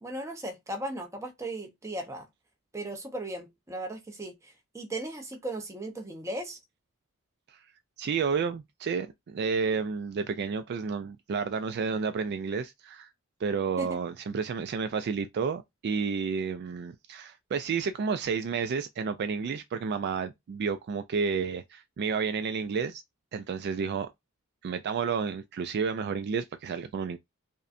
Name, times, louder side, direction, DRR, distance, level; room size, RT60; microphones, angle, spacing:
voice 1, 0.0-2.3 2.7-6.6 13.8-14.0, right 1 dB, 15° right, 0.7 m, -37 dB
voice 2, 8.0-13.1 13.4-23.0 23.3-24.1 24.6-27.2, right 5 dB, 50° right, 0.3 m, -31 dB
5.2 x 2.1 x 2.5 m
head